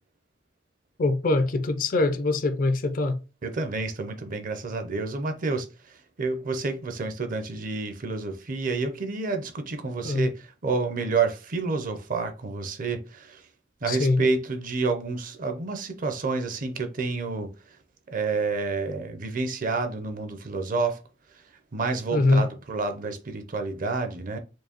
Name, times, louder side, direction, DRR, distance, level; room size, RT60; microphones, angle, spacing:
voice 1, 1.0-3.2 10.0-10.3 13.9-14.2 22.1-22.5, left 2 dB, 50° left, 0.5 m, -23 dB
voice 2, 3.4-13.4 13.8-17.5 18.1-21.0 21.7-24.4, right 3 dB, 50° right, 0.6 m, -29 dB
4.5 x 2.6 x 2.9 m
head